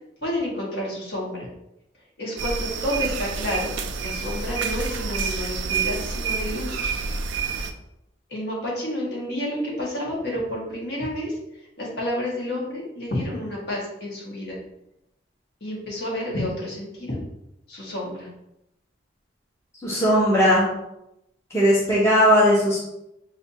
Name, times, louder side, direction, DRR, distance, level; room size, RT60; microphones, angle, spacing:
voice 1, 0.2-1.5 2.2-3.7 4.0-6.8 8.3-14.6 15.6-17.2 17.7-18.3, left 1 dB, 55° left, -4 dB, 1.5 m, -30 dB
sound 1, 2.4-7.7, right 5 dB, 70° right, 0.4 m, -28 dB
voice 2, 19.8-20.7 21.5-22.8, equal, 15° left, -7 dB, 0.9 m, -18 dB
6.4 x 2.7 x 2.7 m, 0.86 s
head